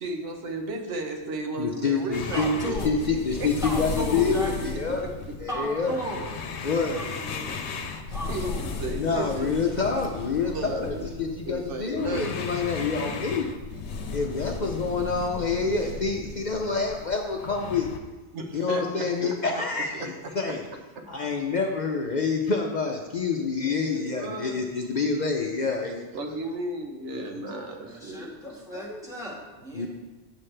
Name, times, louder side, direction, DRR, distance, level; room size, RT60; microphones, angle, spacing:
voice 1, 0.0-2.4 3.4-3.5 4.3-4.4 8.3-8.5 8.8-9.6 10.5-12.3 18.3-19.3 23.9-24.6 26.1-28.3, right 2 dB, 90° right, 3 dB, 1.3 m, -34 dB
voice 2, 1.6-5.1 5.4-5.9 6.6-7.0 9.0-13.5 14.1-17.9 18.5-20.6 21.1-26.4 27.1-27.5 28.4-29.0 29.7-29.9, left 4 dB, 50° left, 2 dB, 0.7 m, -27 dB
sound 1, 2.1-18.0, left 4 dB, 75° left, 1.0 m, -35 dB
voice 3, 2.3-2.9 3.6-4.6 5.5-6.2 6.9-7.6 8.1-8.7 27.4-29.9, right 1 dB, 5° right, -4 dB, 1.6 m, -35 dB
8.9 x 7.3 x 3.3 m, 1.2 s
omnidirectional pair, 1.2 m